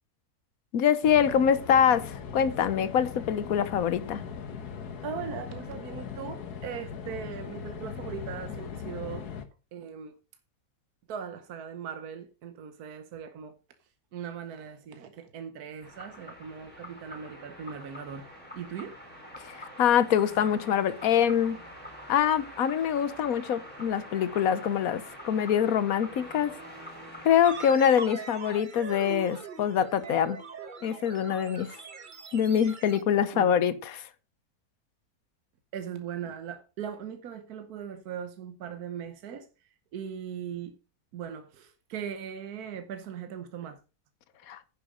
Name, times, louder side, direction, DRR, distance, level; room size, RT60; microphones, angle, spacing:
voice 1, 0.7-4.2 19.4-21.6 22.1-26.5 27.2-30.4 30.8-31.7 32.3-34.1 44.5-44.6, left 8 dB, 70° left, 1.3 m, -25 dB
sound 1, 1.0-9.4, left 6 dB, 90° left, 1.7 m, -39 dB
voice 2, 5.0-9.3 9.7-10.1 11.1-13.6 14.1-18.3 18.5-19.0 33.3-33.8 35.7-39.5 39.9-40.8 41.1-43.8, right 7 dB, 75° right, 1.4 m, -39 dB
sound 2, 15.8-27.7, equal, 5° left, 4.1 m, -45 dB
sound 3, 27.4-33.0, right 4 dB, 35° right, 1.0 m, -41 dB
10.0 x 7.5 x 5.0 m
omnidirectional pair, 1.6 m